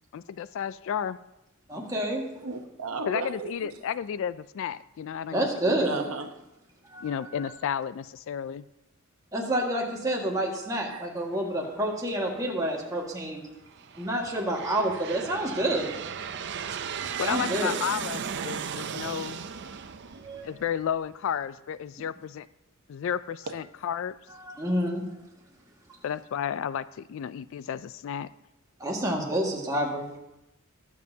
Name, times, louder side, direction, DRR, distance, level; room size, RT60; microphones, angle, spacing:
voice 1, 0.1-1.2 3.1-5.8 7.0-8.6 17.2-19.4 20.4-22.5 22.9-24.2 26.0-28.3, left 8 dB, 60° left, 16 dB, 0.3 m, -32 dB
voice 2, 1.7-2.2 5.3-6.0 6.9-7.5 9.3-13.4 13.9-15.9 16.3-16.4 17.2-17.7 20.2-20.5 24.3-25.0 28.8-30.1, right 1 dB, 15° right, -2 dB, 1.8 m, -28 dB
voice 3, 2.4-3.8 5.8-6.3 10.9-11.1 23.5-23.6, right 4 dB, 75° right, 5 dB, 1.0 m, -35 dB
Aircraft, 12.2-12.8 13.5-21.1, right 7 dB, 55° right, 0.5 m, -36 dB
21.5 x 7.2 x 2.8 m, 0.91 s
head